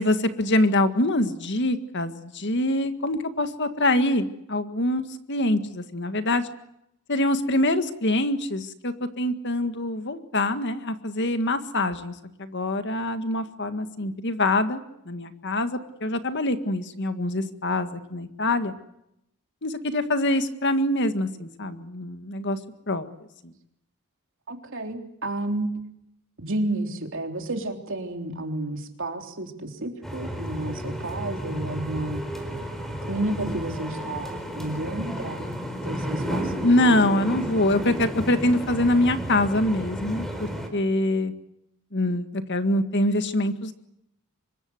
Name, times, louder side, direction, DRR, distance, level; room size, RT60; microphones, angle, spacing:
voice 1, 0.0-5.0 5.3-6.5 7.1-12.1 12.4-18.7 19.6-22.6 22.9-23.1 23.4-23.5 36.6-41.3 41.9-43.7, left 1 dB, 50° left, 9 dB, 1.9 m, -24 dB
voice 2, 24.5-25.7 26.4-32.2 33.0-35.5 35.8-36.5, right 2 dB, 60° right, 4 dB, 3.6 m, -31 dB
sound 1, 30.0-40.7, equal, ahead, 4.3 m, -32 dB
25.5 x 22.5 x 8.0 m, 0.81 s
head